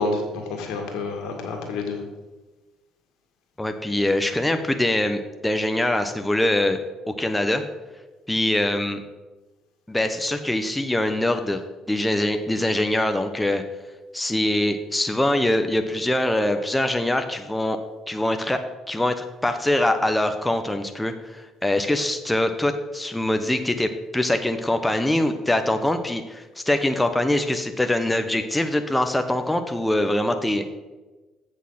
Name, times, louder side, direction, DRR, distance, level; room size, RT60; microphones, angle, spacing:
voice 1, 0.0-2.0, left 3 dB, 75° left, 3 dB, 1.9 m, -28 dB
voice 2, 3.6-7.6 8.3-9.0 9.9-11.6 11.9-13.6 14.1-17.8 18.1-18.6 18.9-30.7, left 1 dB, 10° left, 7 dB, 0.8 m, -23 dB
8.2 x 6.4 x 5.6 m, 1.2 s
supercardioid pair, 75°, 0 cm